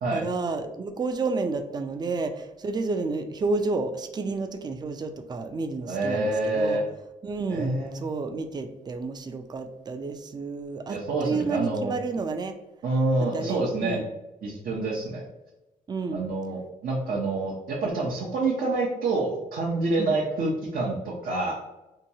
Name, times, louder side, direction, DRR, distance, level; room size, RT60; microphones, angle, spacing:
voice 1, 0.1-6.8 7.2-12.5 13.2-14.0 15.9-16.2 20.0-20.1, right 3 dB, 25° right, 7 dB, 0.3 m, -30 dB
voice 2, 5.9-6.8 7.5-8.0 10.9-11.9 12.8-14.0 14.4-15.2 16.1-21.5, right 2 dB, 65° right, -4 dB, 0.6 m, -27 dB
2.8 x 2.2 x 2.7 m, 0.98 s
cardioid pair, 75°, 15 cm